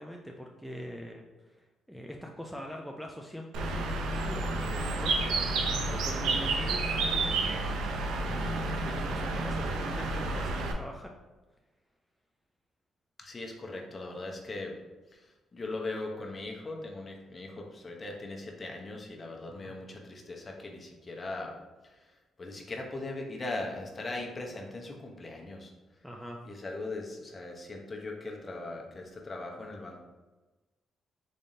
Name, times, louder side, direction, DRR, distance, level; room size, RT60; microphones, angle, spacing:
voice 1, 0.0-7.4 8.3-11.1 19.5-19.8 26.0-26.4, equal, ahead, 1 dB, 0.4 m, -43 dB
Bird, 3.5-10.7, right 2 dB, 85° right, 0.5 m, -30 dB
voice 2, 13.2-14.7 15.1-21.5 21.8-22.1 22.4-25.7 26.4-30.0, left 2 dB, 30° left, 0 dB, 0.7 m, -39 dB
4.0 x 3.4 x 2.6 m, 1.2 s
cardioid pair, 90°, 0 cm